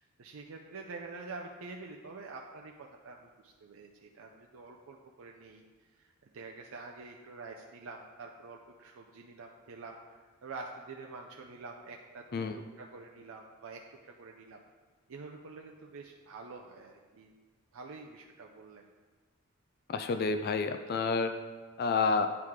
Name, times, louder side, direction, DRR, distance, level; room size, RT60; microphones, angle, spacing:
voice 1, 0.0-5.6 6.0-13.8 14.2-14.6 15.1-17.3 17.7-18.8, right 3 dB, 70° right, 1 dB, 0.5 m, -47 dB
voice 2, 19.9-21.3 21.8-22.3, left 4 dB, 45° left, 8 dB, 0.3 m, -29 dB
9.2 x 4.8 x 3.6 m, 1.4 s
head